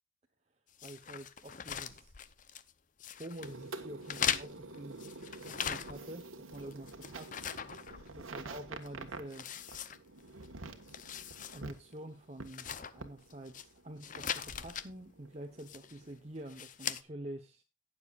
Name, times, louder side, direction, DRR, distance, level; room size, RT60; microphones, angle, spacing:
sound 1, 0.8-2.7 3.0-3.5 4.0-6.2 6.5-8.5 8.8-8.9 9.3-10.5 10.8-11.6 11.9-12.0 12.5-13.6 14.0-14.9 15.6-16.0 16.5-17.0, left 8 dB, 40° left, 0.7 m, -40 dB
voice 1, 0.8-2.2 3.1-5.0 5.5-9.5 11.5-17.6, right 1 dB, 30° right, 4 dB, 1.0 m, -47 dB
sound 2, 3.4-16.6, right 3 dB, 85° right, 1.5 m, -49 dB
18.5 x 7.1 x 2.5 m, 0.27 s
head